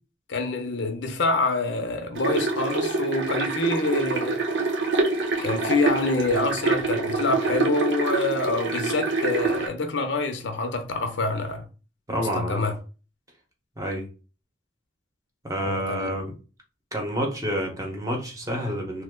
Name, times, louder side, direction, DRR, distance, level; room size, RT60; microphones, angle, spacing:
voice 1, 0.3-4.4 5.4-11.7 12.2-12.7 15.6-16.1, left 3 dB, 75° left, 0.6 m, -26 dB
sound 1, 2.2-9.7, right 3 dB, 80° right, 0.8 m, -26 dB
voice 2, 12.1-12.6 13.8-14.1 15.4-16.3 16.9-19.0, equal, 20° right, 0.8 m, -28 dB
3.1 x 2.1 x 3.6 m
head